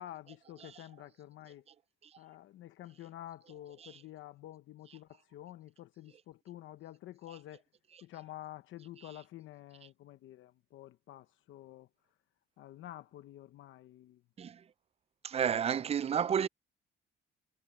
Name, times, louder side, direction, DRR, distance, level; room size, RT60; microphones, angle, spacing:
voice 1, 0.0-1.6 2.2-7.6 8.0-11.9 12.6-14.2, left 13 dB, 80° left, 0.9 m, -49 dB
voice 2, 15.2-16.5, right 8 dB, 30° right, 0.4 m, -31 dB
cardioid pair, 90°, 20 cm